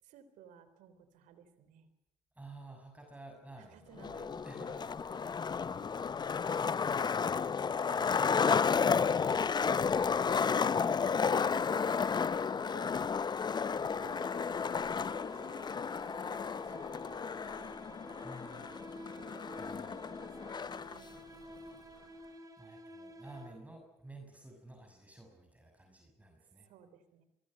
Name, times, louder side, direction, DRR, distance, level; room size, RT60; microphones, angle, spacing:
voice 1, 0.0-1.9 3.6-5.3 5.7-6.2 15.3-17.0 17.6-18.4 18.7-18.8 19.7-21.2 26.6-27.2, right 8 dB, 75° right, 12 dB, 3.5 m, -59 dB
voice 2, 2.3-5.8 18.2-18.6 19.6-20.1 22.6-26.7, right 2 dB, 10° right, 3 dB, 6.7 m, -53 dB
Skateboard, 4.0-21.0, left 6 dB, 35° left, 0.7 m, -32 dB
sound 1, 13.6-23.8, right 1 dB, 25° right, 5.5 m, -51 dB
25.0 x 22.5 x 6.5 m, 0.89 s
supercardioid pair, 70°, 13 cm